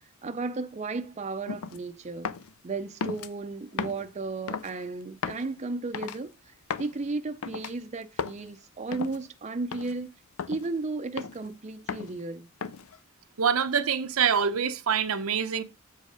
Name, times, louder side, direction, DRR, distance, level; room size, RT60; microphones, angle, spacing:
voice 1, 0.2-2.4 2.6-10.1 10.5-12.5, right 3 dB, 35° right, 0.5 m, -34 dB
sound 1, 1.5-1.8 2.2-2.5 3.0-3.3 3.8-4.1 4.5-4.7 5.2-5.5 5.9-6.2 6.7-6.9 7.4-7.7 8.2-8.4 8.9-9.2 9.7-9.9 10.4-10.7 11.2-11.5 11.9-12.2 12.6-13.0, left 6 dB, 75° left, 0.5 m, -35 dB
voice 2, 13.4-15.6, right 7 dB, 85° right, 0.7 m, -25 dB
7.4 x 3.6 x 5.0 m
head